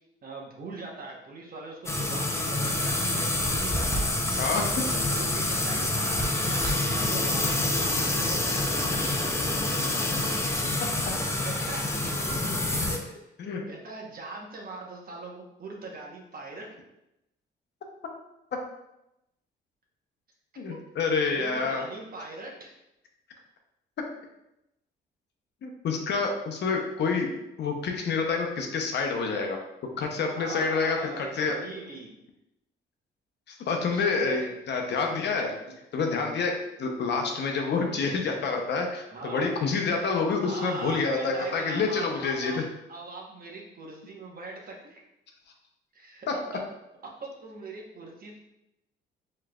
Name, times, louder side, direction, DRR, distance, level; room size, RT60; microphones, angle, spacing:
voice 1, 0.2-4.2 4.8-9.5 10.4-10.5 11.4-12.1 12.7-13.2 13.7-16.8 20.7-20.8 21.3-22.7 30.3-32.1 33.9-34.6 35.1-35.4 39.1-39.6 40.4-42.6 42.9-45.0 45.9-46.3 46.5-46.6 47.0-48.4, right 3 dB, 45° right, -1 dB, 1.0 m, -41 dB
sound 1, 1.9-13.0, left 2 dB, 15° left, 0.6 m, -27 dB
voice 2, 4.4-4.7 13.4-13.6 20.6-21.8 25.6-27.3 27.6-29.6 29.8-31.6 33.5-34.4 34.7-35.5 35.9-42.6, left 4 dB, 60° left, 2 dB, 0.7 m, -28 dB
4.6 x 3.2 x 2.3 m, 0.87 s
cardioid pair, 90°, 20 cm